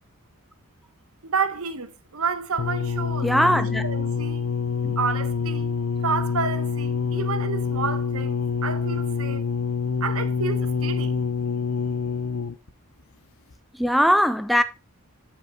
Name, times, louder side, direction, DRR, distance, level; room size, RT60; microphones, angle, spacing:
voice 1, 1.2-3.6 3.8-4.5 5.0-5.7 6.0-9.4 10.0-11.1, right 5 dB, 75° right, 1.1 m, -30 dB
sound 1, 2.6-12.7 13.5-13.6, left 5 dB, 70° left, 0.7 m, -26 dB
voice 2, 3.2-3.9 4.8-5.0 13.7-14.6, equal, ahead, 0.4 m, -20 dB
15.5 x 5.2 x 2.3 m
head